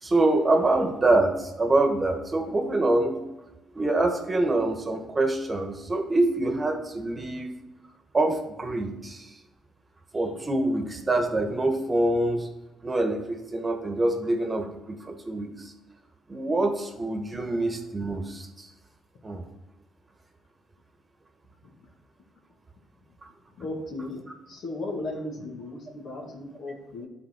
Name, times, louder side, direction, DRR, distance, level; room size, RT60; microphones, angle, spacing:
voice 1, 0.0-3.2 3.7-7.5 8.1-9.4 10.1-12.5 12.8-15.7 16.3-18.7 19.2-19.4 23.2-23.3, right 2 dB, 25° right, 4 dB, 1.3 m, -25 dB
voice 2, 23.6-27.1, left 2 dB, 65° left, 1 dB, 1.9 m, -36 dB
10.5 x 4.4 x 4.5 m, 1.0 s
cardioid pair, 90°, 0 cm